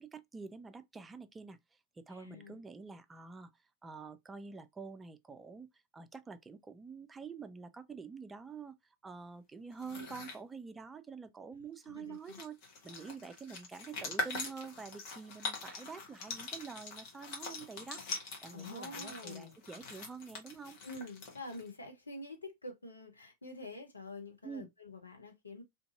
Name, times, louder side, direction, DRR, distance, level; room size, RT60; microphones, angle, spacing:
voice 1, 0.0-12.6 12.8-18.1 18.4-20.8 24.4-24.7, right 5 dB, 15° right, 0.3 m, -47 dB
voice 2, 2.1-2.6 11.9-12.4 18.5-19.5 20.8-25.6, left 2 dB, 80° left, 0.7 m, -47 dB
sound 1, 9.7-10.4 11.8-11.9 12.1-21.7, left 3 dB, 45° left, 1.0 m, -43 dB
2.6 x 2.5 x 2.4 m
figure-of-eight pair, 90°, 0 cm